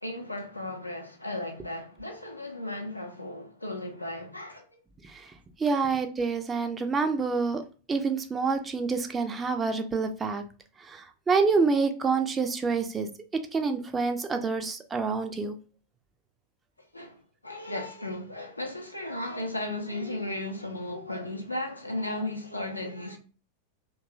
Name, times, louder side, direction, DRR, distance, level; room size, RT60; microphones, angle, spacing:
voice 1, 0.0-4.8 5.6-5.8 16.9-23.2, left 1 dB, 85° left, 0.5 m, -35 dB
voice 2, 5.6-7.6 7.9-10.4 10.9-13.1 13.5-15.6, right 4 dB, 20° right, 0.4 m, -27 dB
2.8 x 2.3 x 2.3 m
figure-of-eight pair, 90°, 0 cm